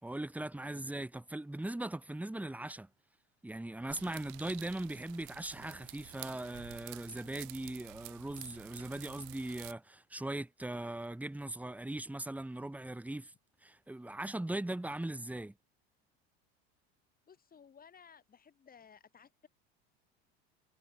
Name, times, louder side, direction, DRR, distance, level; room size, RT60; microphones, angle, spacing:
voice 1, 0.0-2.9 3.4-13.3 13.6-15.5, right 1 dB, 5° right, 2.1 m, -39 dB
sound 1, 3.9-9.7, right 34 dB, 65° right, 2.5 m, -50 dB
voice 2, 17.3-19.5, left 7 dB, 25° left, 4.2 m, -58 dB
hypercardioid pair, 95°, 32 cm